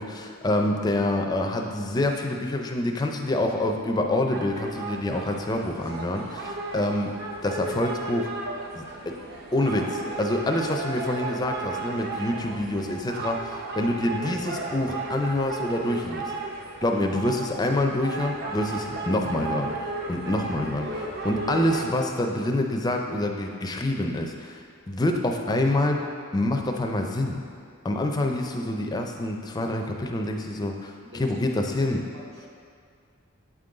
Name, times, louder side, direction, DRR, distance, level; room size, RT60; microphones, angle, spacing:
voice 1, 0.0-7.1 7.4-8.3 8.8-9.1 9.5-16.3 16.8-20.8 21.2-26.1 26.3-27.4 27.8-32.0, left 1 dB, 20° left, 3 dB, 0.4 m, -26 dB
sound 1, 4.3-21.8, right 2 dB, 45° right, 0.6 m, -34 dB
voice 2, 20.7-21.4 31.0-32.5, equal, 65° right, -4 dB, 0.9 m, -43 dB
8.1 x 3.7 x 3.8 m, 2.2 s
head